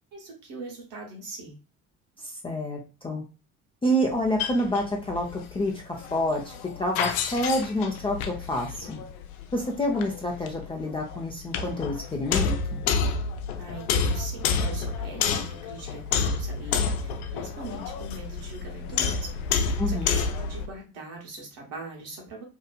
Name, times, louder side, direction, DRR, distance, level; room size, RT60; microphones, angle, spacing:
voice 1, 0.1-1.6 13.6-22.4, right 2 dB, 55° right, 0 dB, 1.2 m, -41 dB
voice 2, 2.2-3.2 3.8-9.0 9.5-12.8 19.8-20.1, equal, 10° left, -1 dB, 0.5 m, -28 dB
sound 1, 4.0-20.7, left 5 dB, 70° left, 0.6 m, -29 dB
2.8 x 2.4 x 2.3 m, 0.32 s
figure-of-eight pair, 55°, 45 cm